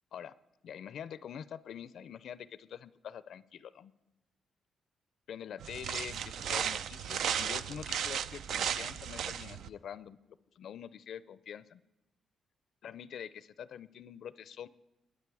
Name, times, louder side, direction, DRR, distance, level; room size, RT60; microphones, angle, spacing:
voice 1, 0.6-3.9 5.3-10.2 10.6-11.8 12.8-14.7, left 8 dB, 65° left, 17 dB, 0.4 m, -45 dB
sound 1, 5.6-9.7, right 8 dB, 75° right, 0.4 m, -35 dB
20.5 x 9.5 x 4.7 m, 0.99 s
cardioid pair, 120°, 0 cm